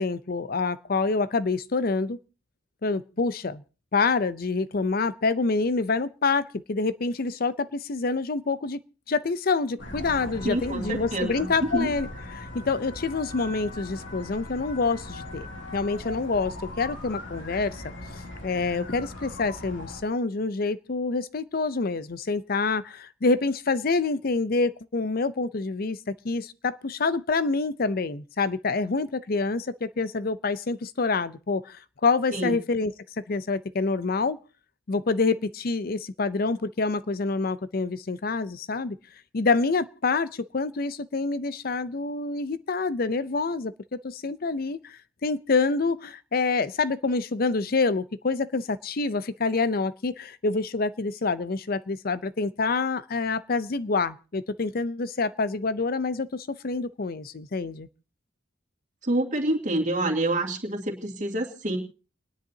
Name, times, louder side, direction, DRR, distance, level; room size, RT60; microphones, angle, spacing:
voice 1, 0.0-2.2 2.8-3.6 3.9-8.8 9.1-12.1 12.3-17.9 18.4-32.9 33.3-34.4 34.9-39.0 39.3-57.9, left 4 dB, 50° left, 0.6 m, -27 dB
sound 1, 9.8-20.0, left 1 dB, 80° left, 2.9 m, -39 dB
voice 2, 10.4-11.5 11.7-11.9 32.3-32.5 59.0-61.8, right 1 dB, 40° right, 2.6 m, -27 dB
29.5 x 10.5 x 2.8 m
head